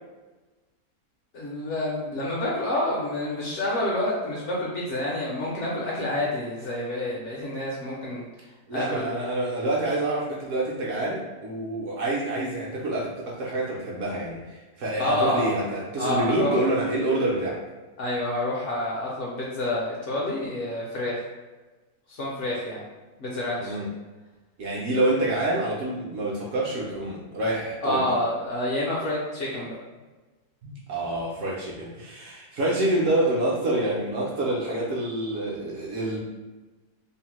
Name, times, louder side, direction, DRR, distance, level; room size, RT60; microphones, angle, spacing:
voice 1, 1.3-8.3 8.7-9.1 15.0-15.6 16.0-16.6 18.0-21.2 22.1-22.8 23.2-23.8 27.8-29.8, left 1 dB, 65° left, -5 dB, 0.8 m, -28 dB
voice 2, 8.7-14.4 14.8-17.6 23.6-23.9 24.6-28.1 30.6-36.2, right 1 dB, 65° right, -4 dB, 0.9 m, -27 dB
2.8 x 2.0 x 3.0 m, 1.2 s
omnidirectional pair, 1.6 m